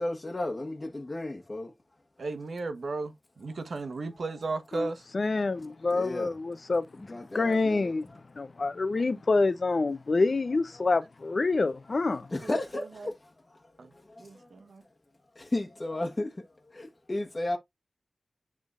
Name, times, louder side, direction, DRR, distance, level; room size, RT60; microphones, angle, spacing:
voice 1, 0.0-1.7 5.9-6.3 7.0-7.9 12.3-13.6 13.9-14.5 15.3-16.3 16.7-17.6, left 2 dB, 35° left, 1.2 m, -34 dB
voice 2, 2.2-5.1 12.4-13.1 13.8-13.9 14.2-14.8, right 3 dB, 80° right, 1.3 m, -35 dB
voice 3, 5.1-6.8 7.3-8.1 8.4-12.3, left 3 dB, 55° left, 0.7 m, -27 dB
11.0 x 3.7 x 2.5 m
wide cardioid pair, 105°, 0 cm